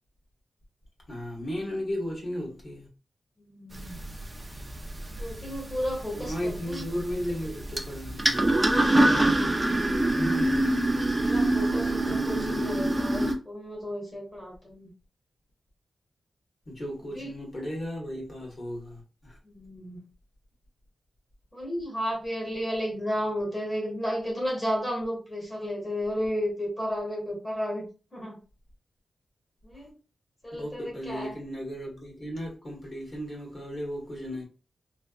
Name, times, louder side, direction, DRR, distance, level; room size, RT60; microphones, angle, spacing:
voice 1, 1.1-2.9 6.1-8.4 16.6-19.4 30.5-34.4, equal, 45° left, 1.6 m, -35 dB
voice 2, 3.4-4.0 5.2-6.9 11.1-14.9 17.0-17.3 19.4-20.0 21.5-28.4 29.6-29.9 30.4-31.4, equal, 25° left, 1.2 m, -33 dB
sound 1, 3.7-13.3, right 1 dB, 20° right, 0.5 m, -25 dB
3.3 x 2.8 x 2.4 m
wide cardioid pair, 135°, 0 cm